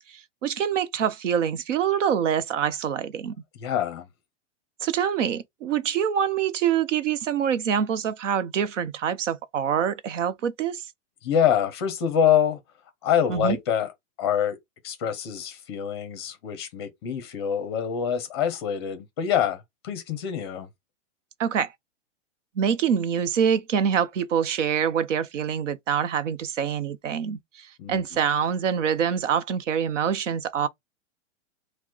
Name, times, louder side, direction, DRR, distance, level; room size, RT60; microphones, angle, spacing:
voice 1, 0.0-3.3 4.8-10.9 13.3-13.6 21.4-21.7 22.6-30.7, right 8 dB, 80° right, 0.8 m, -25 dB
voice 2, 3.6-4.1 11.2-12.6 13.0-13.9 14.2-14.6 14.8-20.7 27.8-28.0, left 8 dB, 20° left, 0.6 m, -25 dB
4.9 x 2.2 x 3.9 m
supercardioid pair, 180°, 37 cm